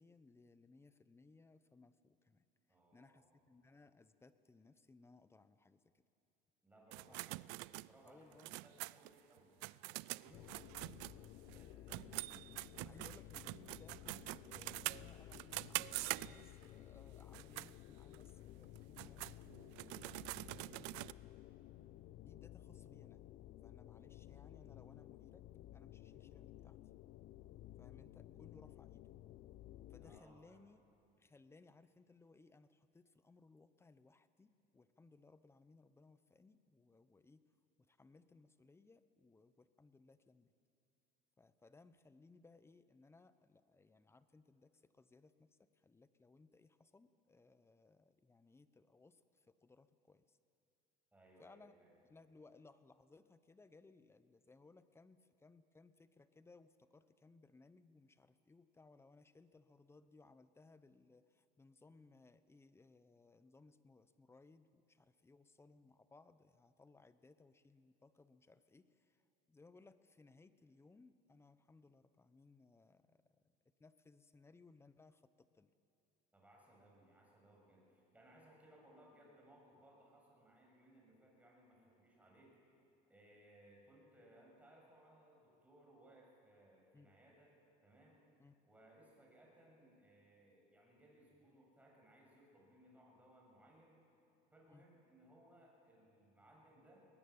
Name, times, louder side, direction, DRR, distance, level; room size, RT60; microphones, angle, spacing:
voice 1, 0.0-6.0 7.1-7.2 8.0-8.5 10.2-10.5 12.8-21.2 22.3-23.2 23.6-25.4 25.7-26.8 27.8-29.0 29.9-30.8 31.2-37.4 37.8-40.5 41.4-50.4 51.4-51.7 52.1-69.2 69.5-73.2 73.8-75.7 86.9-87.1 88.4-88.6 94.7-94.8, left 3 dB, 15° left, 13 dB, 0.9 m, -65 dB
voice 2, 2.7-3.4 6.6-12.1 30.0-30.7 51.1-52.0 76.3-82.6 83.1-87.5 87.8-88.2 88.6-94.0 94.5-97.1, right 1 dB, 10° right, -2 dB, 7.3 m, -65 dB
sound 1, 6.9-11.6 11.9-16.6 17.2-17.7 18.1-18.2 18.7-21.1, right 23 dB, 80° right, 0.4 m, -45 dB
sound 2, 10.3-30.2, left 14 dB, 55° left, 0.7 m, -55 dB
20.5 x 20.0 x 8.7 m, 2.6 s
cardioid pair, 130°, 19 cm